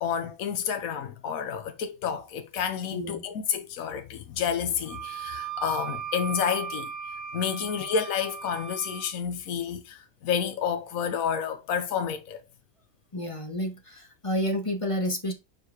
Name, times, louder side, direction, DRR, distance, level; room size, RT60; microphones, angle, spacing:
voice 1, 0.0-6.9 7.3-12.4, left 7 dB, 80° left, 1.3 m, -30 dB
voice 2, 2.9-3.3 13.1-15.3, equal, 25° left, 1.1 m, -30 dB
Wind instrument woodwind instrument, 4.8-9.1, right 8 dB, 25° right, 1.4 m, -37 dB
4.7 x 4.7 x 4.7 m
omnidirectional pair, 1.5 m